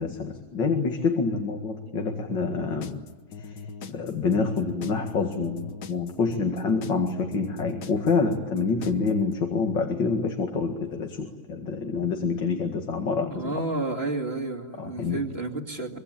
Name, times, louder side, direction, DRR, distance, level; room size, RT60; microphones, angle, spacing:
voice 1, 0.0-2.9 3.9-13.5 14.8-15.2, left 4 dB, 85° left, 4 dB, 2.7 m, -27 dB
sound 1, 2.8-9.3, left 6 dB, 70° left, 1.8 m, -40 dB
voice 2, 13.3-16.0, right 2 dB, 35° right, 1 dB, 2.7 m, -31 dB
25.0 x 24.5 x 8.9 m, 1.3 s
omnidirectional pair, 1.9 m